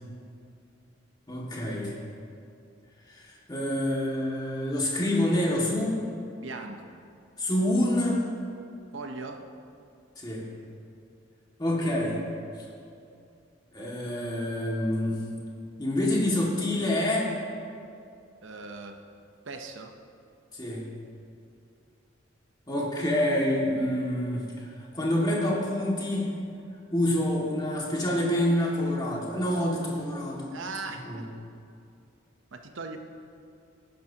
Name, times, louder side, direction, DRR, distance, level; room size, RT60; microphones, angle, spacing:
voice 1, 1.3-1.9 3.1-6.0 7.4-8.3 10.2-10.5 11.6-12.2 13.7-15.2 15.8-17.4 20.5-20.8 22.7-24.7 24.9-26.3 26.9-30.5 31.0-31.2, left 1 dB, 20° left, -4 dB, 2.1 m, -27 dB
voice 2, 6.4-6.9 8.9-9.5 18.4-19.0 19.5-20.0 30.5-31.3 32.5-33.0, right 3 dB, 80° right, 5 dB, 0.8 m, -39 dB
19.0 x 10.5 x 2.9 m, 2.5 s
head